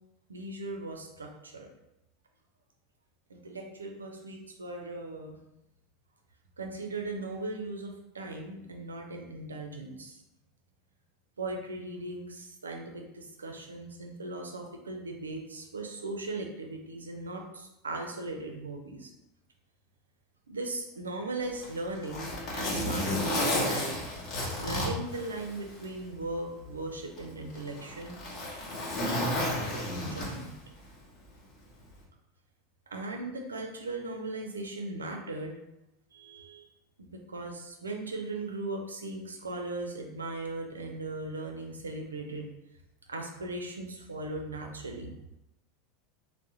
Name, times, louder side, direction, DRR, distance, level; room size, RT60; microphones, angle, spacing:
voice 1, 0.3-1.7 3.3-5.4 6.6-10.2 11.4-19.1 20.5-24.0 24.5-28.2 29.9-30.6 32.9-35.5 36.1-36.7 37.0-42.5 43.1-45.1, right 2 dB, 75° right, 2 dB, 0.4 m, -38 dB
Zipper (clothing), 21.4-25.9 26.3-26.4 27.2-30.6 31.8-32.0, left 1 dB, 40° left, 1.0 m, -32 dB
3.5 x 2.1 x 2.8 m, 0.87 s
figure-of-eight pair, 80°, 0 cm